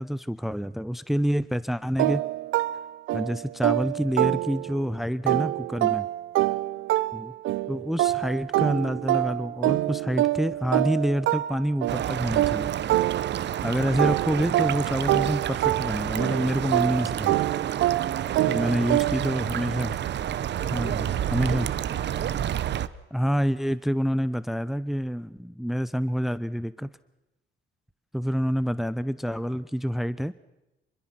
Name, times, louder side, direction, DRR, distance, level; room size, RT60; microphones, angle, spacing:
voice 1, 0.0-2.2 3.1-6.1 7.1-7.3 7.7-12.7 13.6-17.4 18.5-20.0 20.7-21.0 21.3-21.7 23.1-26.9 28.1-30.3, equal, ahead, 16 dB, 0.8 m, -27 dB
sound 1, 2.0-4.9 5.3-13.6 14.0-19.4, right 15 dB, 85° right, 0.7 m, -26 dB
voice 2, 6.4-6.9 14.1-14.2 18.3-19.6 20.6-22.3, left 6 dB, 70° left, 5 dB, 4.2 m, -50 dB
sound 2, 11.9-22.9, right 10 dB, 60° right, 1.0 m, -29 dB
26.0 x 22.0 x 6.1 m, 0.96 s
cardioid pair, 90°, 20 cm